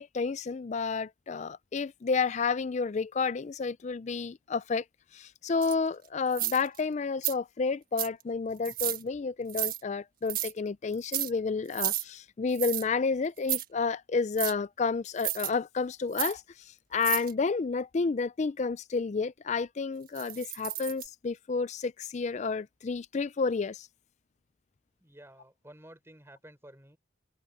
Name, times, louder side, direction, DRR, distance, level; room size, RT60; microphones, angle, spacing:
voice 1, 0.0-4.8 5.1-23.9, left 4 dB, 35° left, 0.4 m, -30 dB
sound 1, 5.6-5.7 6.3-6.8 7.2-7.3 8.0-8.2 8.6-9.0 9.5-9.8 10.3-10.5 10.9-11.3 11.7-12.0 12.5-12.8 13.4-13.6 14.4-14.5 15.2-15.5 16.1-16.3 17.0-17.3 20.1-21.1, right 13 dB, 50° right, 1.5 m, -32 dB
voice 2, 25.0-27.0, right 1 dB, 15° right, 5.7 m, -52 dB
head